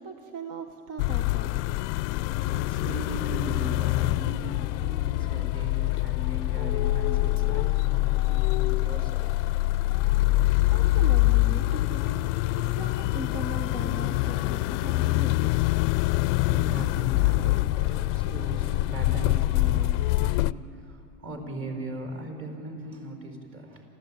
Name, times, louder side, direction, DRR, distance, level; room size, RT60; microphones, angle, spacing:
voice 1, 0.0-1.6 10.6-12.2 12.6-15.6, right 4 dB, 45° right, 6 dB, 1.5 m, -39 dB
sound 1, 1.0-20.5, left 19 dB, 55° left, 0.6 m, -25 dB
voice 2, 2.2-9.5 16.2-23.8, right 1 dB, 30° right, 4 dB, 4.8 m, -39 dB
27.5 x 14.5 x 8.8 m, 2.7 s
supercardioid pair, 120°, 42 cm